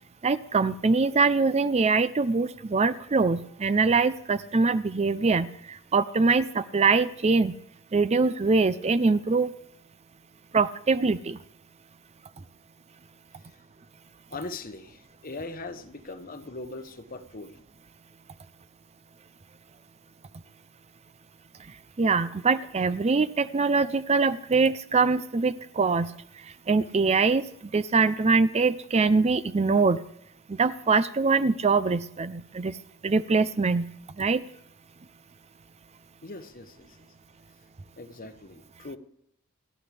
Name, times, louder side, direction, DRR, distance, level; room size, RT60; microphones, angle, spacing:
voice 1, 0.2-7.5 7.9-9.5 10.5-11.4 22.0-26.1 26.7-27.5 27.7-30.0 30.5-32.8 33.0-33.9 34.2-34.4, right 4 dB, 30° right, 13 dB, 0.5 m, -23 dB
voice 2, 14.3-17.6 36.2-37.0 38.0-39.0, left 3 dB, 40° left, 9 dB, 1.1 m, -40 dB
28.5 x 11.5 x 3.4 m, 0.72 s
head